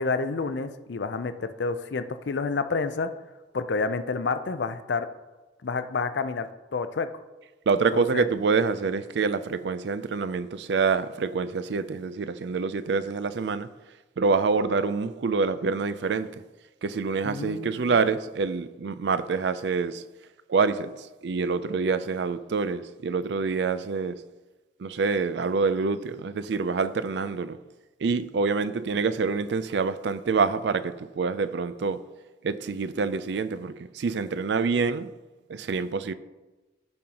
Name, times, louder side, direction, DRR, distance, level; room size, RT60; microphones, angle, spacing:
voice 1, 0.0-3.1 3.5-5.1 5.6-7.1 7.9-8.2 17.2-17.9, left 4 dB, 75° left, 0.5 m, -29 dB
voice 2, 7.7-13.7 14.2-16.3 16.8-20.0 20.5-20.9 21.2-24.2 24.8-27.6 28.0-32.0 32.4-35.1 35.5-36.1, right 4 dB, 70° right, 0.4 m, -26 dB
15.5 x 5.4 x 2.9 m
head